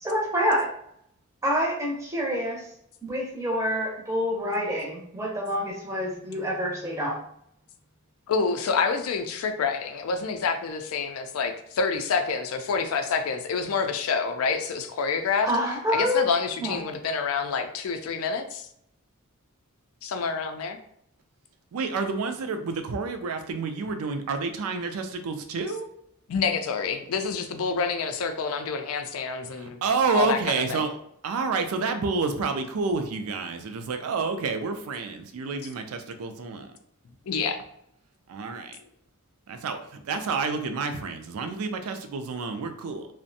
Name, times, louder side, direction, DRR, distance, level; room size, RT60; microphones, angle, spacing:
voice 1, 0.0-0.7 1.4-2.6 3.0-7.2 15.4-16.2 16.6-16.8, equal, 15° right, -3 dB, 0.6 m, -27 dB
voice 2, 8.3-15.5 15.9-18.7 20.0-20.8 26.3-29.8 30.1-30.8 37.3-37.6, left 5 dB, 75° left, 7 dB, 0.4 m, -27 dB
voice 3, 21.7-25.9 29.5-31.0 31.2-36.7 38.3-38.8 39.5-43.1, right 4 dB, 85° right, 7 dB, 0.4 m, -29 dB
2.5 x 2.1 x 2.6 m, 0.71 s
head